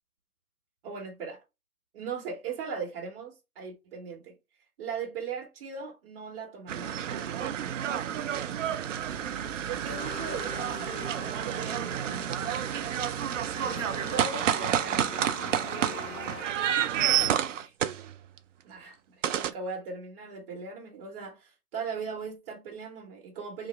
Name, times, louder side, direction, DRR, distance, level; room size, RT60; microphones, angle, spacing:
voice 1, 0.8-1.4 1.9-4.4 4.8-7.9 9.7-12.9 13.7-15.1 15.4-16.6 17.3-18.1 18.6-23.7, right 5 dB, 40° right, 1.3 m, -39 dB
sound 1, 6.7-18.4 19.2-19.5, right 9 dB, 60° right, 0.5 m, -30 dB
sound 2, 9.9-16.4, left 6 dB, 45° left, 0.8 m, -44 dB
3.0 x 2.4 x 4.2 m
hypercardioid pair, 135°, 44 cm